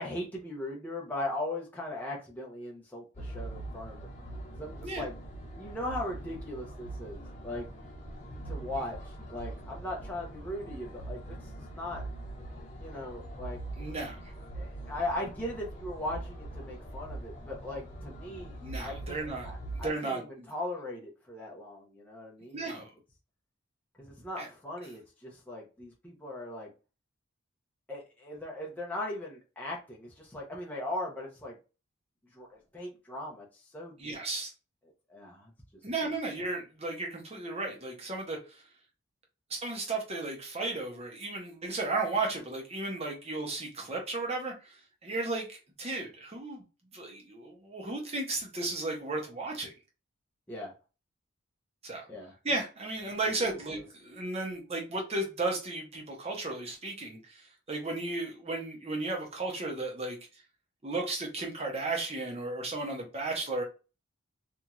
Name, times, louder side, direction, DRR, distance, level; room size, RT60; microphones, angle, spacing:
voice 1, 0.0-4.1 4.6-5.1 5.5-7.7 8.5-12.0 12.8-13.6 14.5-22.9 24.0-26.7 27.9-31.6 32.3-34.1 35.1-35.5 50.5-50.7 52.1-52.3 53.3-53.8, left 1 dB, 10° left, 0.6 m, -39 dB
sound 1, 3.1-19.9, right 1 dB, 35° left, 0.8 m, -42 dB
voice 2, 13.8-14.3 18.6-19.5 19.8-20.5 22.5-22.9 24.4-24.5 34.0-34.5 35.8-38.6 39.5-44.8 45.0-46.6 46.9-49.7 51.8-52.1 52.4-60.2 60.8-63.6, right 2 dB, 30° right, 0.7 m, -34 dB
3.0 x 2.6 x 2.3 m
head